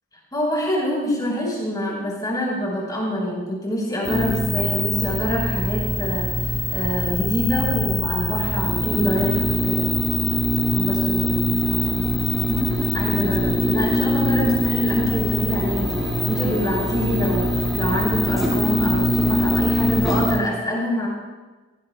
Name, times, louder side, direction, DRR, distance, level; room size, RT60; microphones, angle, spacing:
voice 1, 0.3-9.9 10.7-12.1 12.5-21.1, equal, 20° left, -4 dB, 4.9 m, -26 dB
sound 1, 4.0-20.4, left 1 dB, ahead, 4.9 m, -22 dB
28.0 x 18.5 x 2.3 m, 1.2 s
head